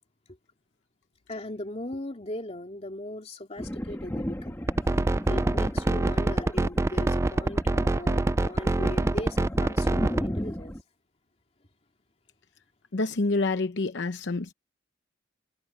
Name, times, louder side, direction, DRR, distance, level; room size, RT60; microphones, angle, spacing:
voice 1, 1.3-4.6 5.3-10.8, left 1 dB, 35° left, 2.6 m, -38 dB
Thunder, 3.6-10.8, equal, 15° left, 2.2 m, -36 dB
sound 1, 4.7-10.2, right 2 dB, 15° right, 0.3 m, -24 dB
voice 2, 12.9-14.5, left 3 dB, 75° left, 0.8 m, -27 dB
head